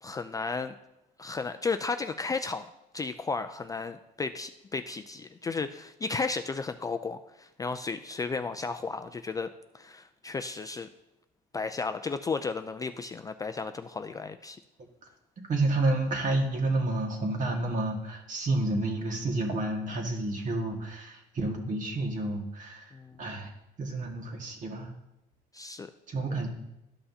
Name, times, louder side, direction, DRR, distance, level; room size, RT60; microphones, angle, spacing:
voice 1, 0.0-0.7 1.2-2.7 2.9-9.5 9.7-10.9 11.5-14.6 22.9-23.2 25.5-25.9 26.3-26.4, left 4 dB, 20° left, 8 dB, 0.3 m, -34 dB
voice 2, 15.5-22.9 23.2-23.5 23.8-24.9 26.1-26.5, right 2 dB, 50° right, 2 dB, 1.7 m, -30 dB
12.5 x 5.5 x 2.8 m, 0.92 s
cardioid pair, 110°, 17 cm